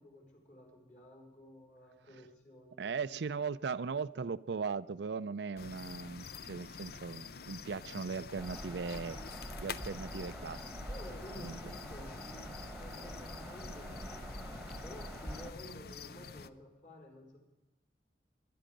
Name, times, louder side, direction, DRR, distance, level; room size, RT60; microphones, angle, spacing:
voice 1, 0.0-2.9 10.9-17.4, left 1 dB, 40° left, 4.6 m, -53 dB
voice 2, 2.8-10.7 11.4-11.7, right 5 dB, 70° right, 0.5 m, -38 dB
sound 1, 5.6-16.5, left 5 dB, 55° left, 0.6 m, -47 dB
Bird vocalization bird call bird song, 8.4-15.5, equal, ahead, 1.4 m, -45 dB
21.5 x 11.0 x 5.2 m
head